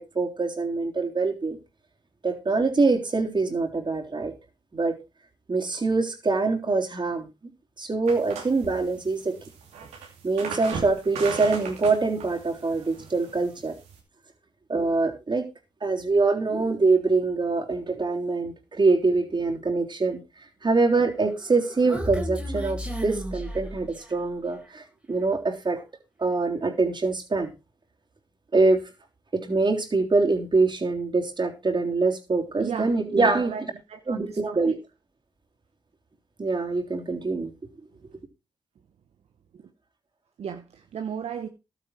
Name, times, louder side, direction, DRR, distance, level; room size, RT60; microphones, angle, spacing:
voice 1, 0.0-1.6 2.2-4.3 4.7-4.9 5.5-7.3 7.8-9.3 10.2-13.7 14.7-15.4 15.8-20.2 20.6-25.8 26.2-27.5 28.5-28.8 29.3-33.5 34.1-34.8 36.4-37.5, right 3 dB, 45° right, 3.5 m, -24 dB
sound 1, 8.1-14.0, right 5 dB, 85° right, 2.6 m, -38 dB
Human voice, 21.3-24.3, equal, 10° right, 3.4 m, -34 dB
voice 2, 32.6-33.6 33.9-34.6 40.4-41.5, right 7 dB, 70° right, 1.1 m, -35 dB
12.0 x 9.1 x 4.6 m
supercardioid pair, 40°, 11 cm